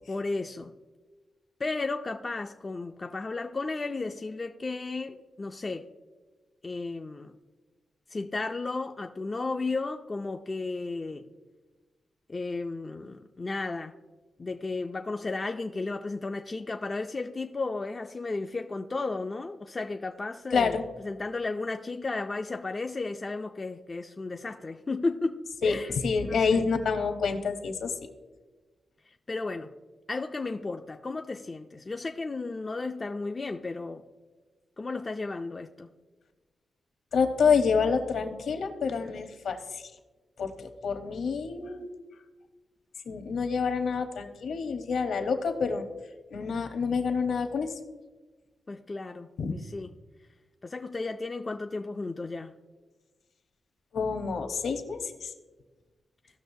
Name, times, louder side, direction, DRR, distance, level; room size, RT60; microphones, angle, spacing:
voice 1, 0.1-0.7 1.6-5.9 6.6-7.3 8.1-11.3 12.3-13.9 14.4-20.8 21.0-25.9 26.2-26.6 29.1-29.7 30.1-34.0 34.8-35.9 48.7-49.9 50.6-52.5, left 3 dB, 20° left, 4 dB, 0.3 m, -34 dB
voice 2, 20.5-20.8 25.6-25.8 26.0-27.9 37.1-39.8 40.4-41.9 43.1-45.8 46.3-47.7 49.4-49.6 53.9-55.3, left 5 dB, 65° left, 5 dB, 1.0 m, -28 dB
16.5 x 6.4 x 2.7 m, 1.3 s
wide cardioid pair, 170°, 0 cm